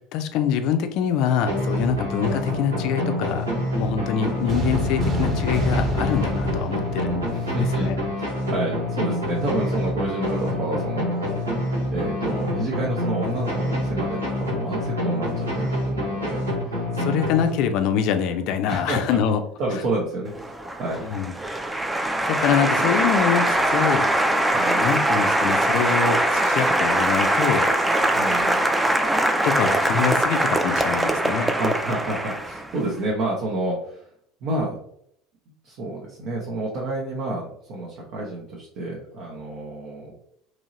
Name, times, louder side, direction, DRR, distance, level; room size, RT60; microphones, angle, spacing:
voice 1, 0.1-7.2 7.8-8.0 17.0-19.4 21.0-21.3 22.3-24.1 24.8-27.7 29.4-31.5, left 8 dB, 55° left, 8 dB, 0.4 m, -24 dB
sound 1, 1.5-18.0, left 1 dB, 90° right, 0.8 m, -27 dB
sound 2, 4.5-7.9, left 1 dB, 40° right, 1.0 m, -28 dB
voice 2, 7.3-11.4 11.9-16.8 18.7-19.2 19.6-21.0 23.5-23.6 24.5-24.8 28.1-28.7 31.6-34.1 34.4-34.8 35.6-40.1, right 2 dB, 55° right, -3 dB, 0.7 m, -29 dB
Applause, 20.3-32.8, right 1 dB, 10° right, 0.4 m, -22 dB
3.0 x 2.8 x 2.6 m, 0.69 s
figure-of-eight pair, 65°, 0 cm